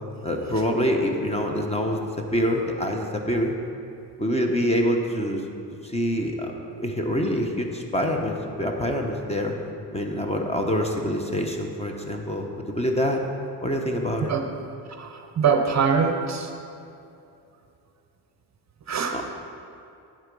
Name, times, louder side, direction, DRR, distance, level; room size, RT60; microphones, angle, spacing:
voice 1, 0.2-2.0 2.3-3.5 4.2-5.4 5.8-6.5 6.8-9.5 9.9-13.2 13.6-14.3 19.1-19.3, equal, 15° left, 2 dB, 0.9 m, -25 dB
voice 2, 15.0-16.5 18.9-19.1, right 6 dB, 40° right, 5 dB, 0.8 m, -23 dB
9.1 x 7.9 x 5.3 m, 2.6 s
cardioid pair, 120°, 42 cm